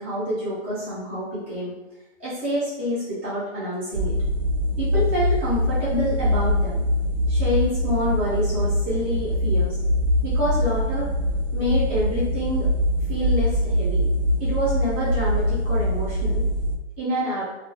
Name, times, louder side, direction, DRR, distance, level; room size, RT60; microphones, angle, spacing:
voice 1, 0.0-1.7 2.2-4.1 4.8-6.8 7.3-9.8 10.2-11.1 11.5-12.7 13.1-14.0 14.4-16.4 17.0-17.5, equal, 10° right, -12 dB, 0.4 m, -27 dB
sound 1, 3.9-16.8, left 1 dB, 85° right, 0.5 m, -23 dB
2.2 x 2.0 x 2.9 m, 1.0 s
hypercardioid pair, 155°, 36 cm